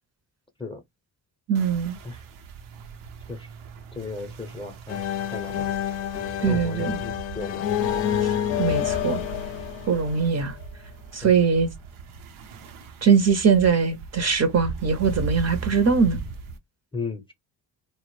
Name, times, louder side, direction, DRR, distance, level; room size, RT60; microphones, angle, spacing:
voice 1, 1.5-2.0 6.4-7.0 8.2-8.3 8.6-9.2 9.9-10.6 11.1-11.7 13.0-16.2, right 6 dB, 35° right, 0.5 m, -21 dB
sound 1, 1.5-16.6, right 5 dB, 85° right, 0.6 m, -39 dB
voice 2, 3.9-5.7 6.4-7.7 11.2-11.3 16.9-17.3, left 4 dB, 10° left, 0.5 m, -35 dB
sound 2, 4.9-10.6, left 10 dB, 80° left, 0.5 m, -28 dB
2.0 x 2.0 x 3.0 m
hypercardioid pair, 50°, 49 cm